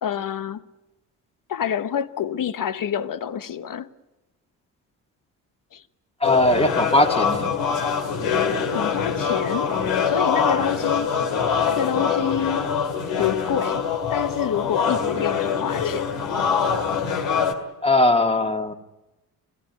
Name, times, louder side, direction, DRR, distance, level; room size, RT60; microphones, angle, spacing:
voice 1, 0.0-0.6 1.5-3.9 5.7-5.8 8.7-9.7 10.1-11.2 11.6-12.7 13.2-16.1, left 8 dB, 45° left, 1.1 m, -27 dB
sound 1, 6.2-17.5, left 6 dB, 65° left, 2.3 m, -24 dB
voice 2, 6.2-7.5 17.8-18.7, left 1 dB, 10° left, 1.8 m, -19 dB
24.5 x 16.0 x 9.3 m
hypercardioid pair, 45°, 48 cm